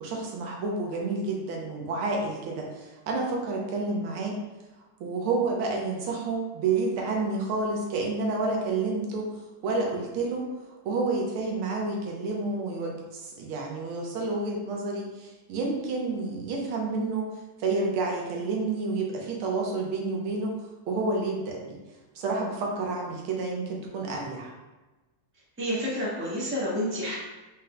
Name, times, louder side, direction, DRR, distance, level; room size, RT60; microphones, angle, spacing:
voice 1, 0.0-4.4 5.0-9.3 9.6-10.5 10.8-17.3 17.6-20.5 20.9-21.8 22.1-24.5, right 3 dB, 85° right, 0 dB, 1.7 m, -29 dB
voice 2, 25.6-27.1, equal, 10° right, -8 dB, 1.0 m, -29 dB
5.1 x 3.9 x 2.2 m, 1.1 s
omnidirectional pair, 2.3 m